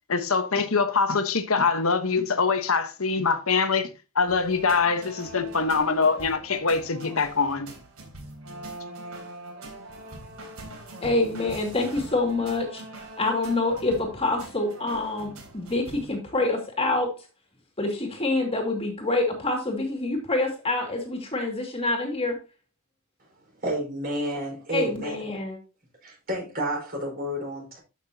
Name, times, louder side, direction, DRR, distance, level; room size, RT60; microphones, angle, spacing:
voice 1, 0.1-7.7, left 4 dB, 70° left, 1.2 m, -24 dB
sound 1, 4.3-16.1, right 2 dB, 85° right, 3.6 m, -42 dB
voice 2, 11.0-12.8 13.2-17.1 17.8-22.4 24.7-25.6, left 2 dB, 25° left, 2.2 m, -26 dB
voice 3, 23.6-25.2 26.0-27.8, right 1 dB, 45° right, 4.8 m, -30 dB
13.0 x 6.0 x 2.8 m
head